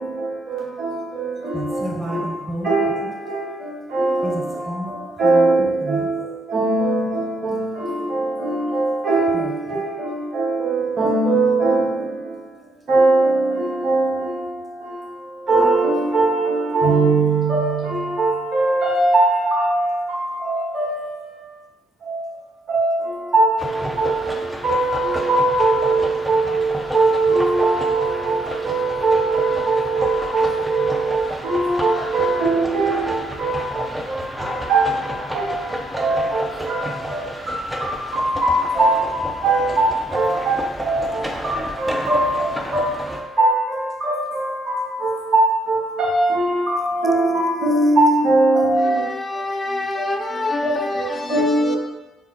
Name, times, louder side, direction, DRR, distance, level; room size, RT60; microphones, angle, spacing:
voice 1, 1.5-2.7 4.2-6.1 9.3-9.5 33.6-34.5, right 1 dB, 25° right, 1.3 m, -32 dB
voice 2, 3.9-4.3 5.2-6.2 6.5-11.9 12.9-14.1 15.5-19.9 20.5-21.1 22.1-22.2 22.7-23.5 24.0-24.1 24.6-26.7 26.9-33.5 34.7-34.9 35.3-35.5 36.0-36.4 36.7-36.8 37.1-37.2 38.1-40.6 40.8-42.4 42.7-43.0 43.4-43.5 44.0-44.3 44.7-44.8 45.3-48.9 50.6-50.9 51.3-51.8, right 2 dB, 60° right, 1.1 m, -19 dB
sound 1, 23.6-43.2, equal, 10° right, 0.7 m, -31 dB
voice 3, 48.8-51.8, left 2 dB, 35° left, 0.5 m, -26 dB
5.5 x 2.0 x 3.0 m
hypercardioid pair, 45°, 0 cm